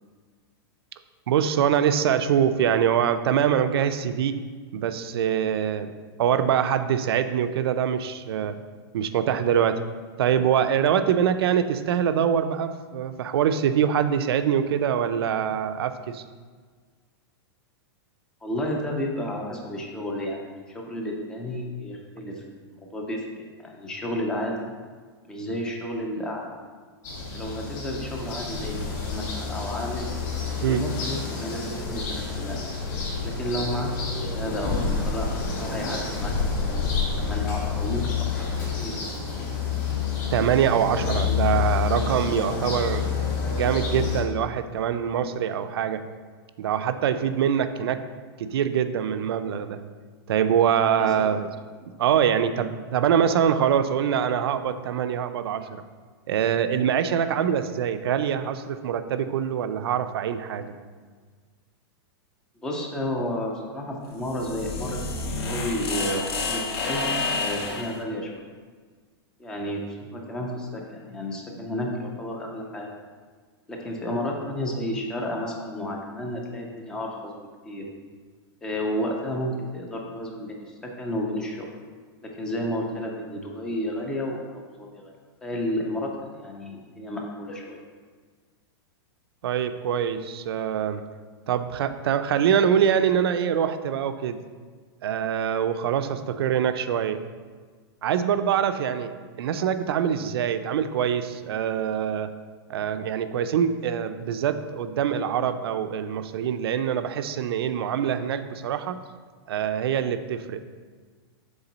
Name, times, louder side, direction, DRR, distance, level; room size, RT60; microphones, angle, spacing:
voice 1, 1.3-4.4 4.7-5.9 6.2-8.5 8.9-9.8 10.2-16.2 30.6-30.8 40.3-43.1 43.5-46.0 46.6-48.0 48.4-49.8 50.3-51.5 52.0-55.8 56.3-60.7 89.4-91.0 91.5-94.4 95.0-97.2 98.0-102.3 102.7-109.0 109.5-110.6, right 8 dB, 65° right, 10 dB, 0.4 m, -24 dB
voice 2, 18.4-22.4 22.7-24.7 25.3-26.5 27.2-30.1 30.6-32.6 33.2-38.5 38.8-39.0 51.0-51.3 62.6-68.5 69.4-72.9 73.7-77.3 77.7-77.9 78.6-81.7 82.2-85.1 85.4-87.8, left 1 dB, 5° left, 0 dB, 0.3 m, -32 dB
sound 1, 27.0-44.2, left 5 dB, 40° left, 1.8 m, -28 dB
sound 2, 64.1-68.0, left 3 dB, 70° left, 0.9 m, -29 dB
7.1 x 3.8 x 3.9 m, 1.6 s
supercardioid pair, 180°, 14 cm